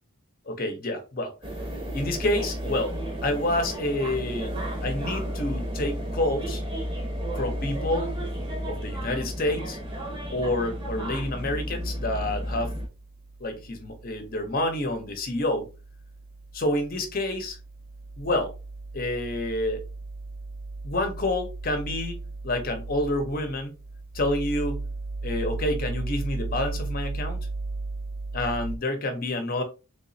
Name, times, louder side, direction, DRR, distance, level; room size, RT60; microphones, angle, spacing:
voice 1, 0.5-1.3 1.9-2.9 3.2-4.6 4.8-6.6 7.4-8.1 8.7-9.8 10.3-12.7 13.4-15.7 16.5-17.6 18.2-18.5 18.9-19.8 20.8-22.2 22.4-23.8 24.1-24.8 25.2-27.5 28.3-29.6, left 1 dB, 40° left, 0.7 m, -28 dB
sound 1, 1.4-12.9, equal, 20° right, 0.8 m, -32 dB
sound 2, 11.7-28.8, right 3 dB, 40° right, 0.4 m, -36 dB
3.5 x 2.9 x 2.6 m
head